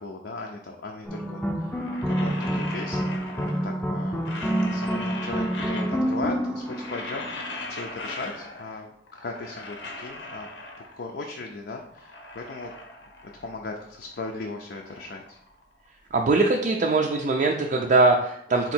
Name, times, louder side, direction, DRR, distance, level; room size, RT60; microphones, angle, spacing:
voice 1, 0.0-1.7 2.0-4.3 4.7-10.5 11.0-12.7 13.2-15.4, left 3 dB, 65° left, 1 dB, 0.5 m, -37 dB
sound 1, 1.1-7.7, equal, 10° left, 0.6 m, -28 dB
sound 2, 1.6-3.8 4.1-6.3 6.5-8.8 9.1-11.1 11.6-13.6 13.9-16.1, left 2 dB, 90° left, 0.8 m, -40 dB
voice 2, 16.1-18.7, right 3 dB, 45° right, 1 dB, 0.4 m, -21 dB
4.5 x 2.8 x 4.3 m, 0.74 s
head